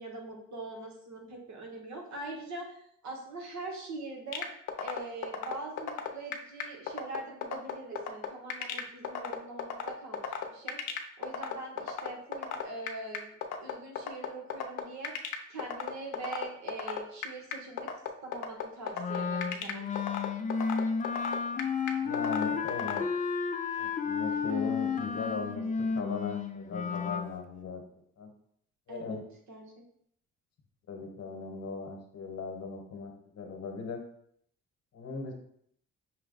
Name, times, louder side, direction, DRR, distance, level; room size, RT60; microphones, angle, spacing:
voice 1, 0.0-2.8 3.0-4.5 4.8-10.8 11.2-15.1 15.5-17.9 18.2-19.9 28.9-29.2 29.5-29.8, right 2 dB, 65° right, 0 dB, 1.3 m, -42 dB
sound 1, 4.3-23.0, left 9 dB, 75° left, 0.6 m, -34 dB
Wind instrument woodwind instrument, 19.0-27.3, left 6 dB, 25° left, 0.4 m, -32 dB
voice 2, 22.0-23.0 23.7-27.8 28.2-28.3 28.9-29.2 30.9-34.0 34.9-35.3, left 4 dB, 60° left, 3 dB, 1.1 m, -38 dB
6.0 x 2.2 x 3.9 m, 0.67 s
cardioid pair, 90°, 30 cm